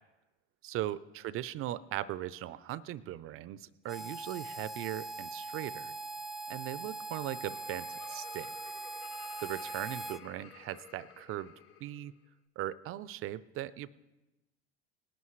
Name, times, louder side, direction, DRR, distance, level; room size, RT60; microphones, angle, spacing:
voice 1, 0.6-5.9 6.5-8.5 9.4-11.5 11.8-12.1 12.6-13.9, right 13 dB, 45° right, 18 dB, 0.6 m, -39 dB
Harmonica, 3.9-10.2, right 2 dB, ahead, 0.3 m, -41 dB
Laughter, 6.9-12.1, left 8 dB, 45° left, 1.5 m, -54 dB
19.0 x 11.5 x 3.2 m, 1.0 s
hypercardioid pair, 85°, 32 cm